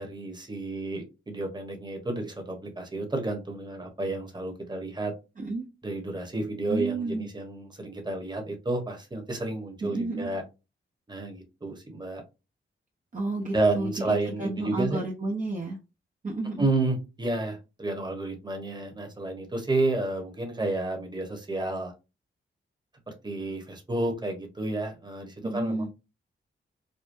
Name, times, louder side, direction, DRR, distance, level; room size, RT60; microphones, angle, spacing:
voice 1, 0.0-5.1 5.8-10.4 11.1-12.2 13.5-15.0 16.6-21.9 23.2-25.9, right 2 dB, 20° right, 3 dB, 1.2 m, -31 dB
voice 2, 6.7-7.3 9.8-10.3 13.1-15.8 16.2-16.7 25.4-25.9, right 2 dB, 40° right, -2 dB, 0.8 m, -31 dB
5.0 x 2.2 x 2.6 m, 0.28 s
cardioid pair, 80°, 21 cm